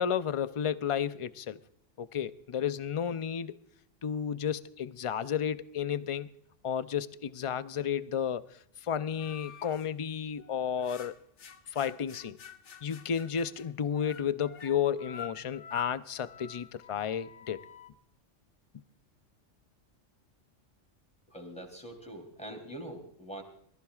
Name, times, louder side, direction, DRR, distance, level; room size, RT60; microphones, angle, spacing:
voice 1, 0.0-1.6 2.0-3.6 4.0-6.3 6.6-8.4 8.8-11.1 11.7-12.4 12.8-17.6, left 8 dB, 45° left, 0.4 m, -32 dB
sound 1, 9.2-9.9 10.4-17.9, left 7 dB, 70° left, 1.3 m, -48 dB
voice 2, 21.3-23.4, right 1 dB, 5° left, 3.2 m, -43 dB
23.0 x 14.5 x 2.4 m
omnidirectional pair, 1.3 m